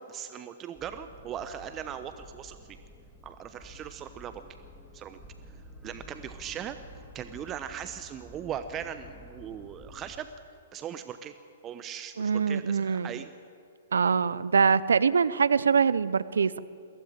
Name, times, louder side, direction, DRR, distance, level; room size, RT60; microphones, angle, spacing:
voice 1, 0.0-2.8 3.2-4.4 4.9-5.2 5.8-6.8 7.1-10.3 10.7-11.3 11.6-13.3, right 9 dB, 25° right, 10 dB, 1.0 m, -39 dB
sound 1, 0.8-10.2, left 1 dB, 5° left, 3.1 m, -50 dB
voice 2, 12.2-13.1 13.9-16.6, right 6 dB, 80° right, 17 dB, 0.7 m, -24 dB
22.5 x 16.5 x 9.0 m, 2.4 s
hypercardioid pair, 125°, 0 cm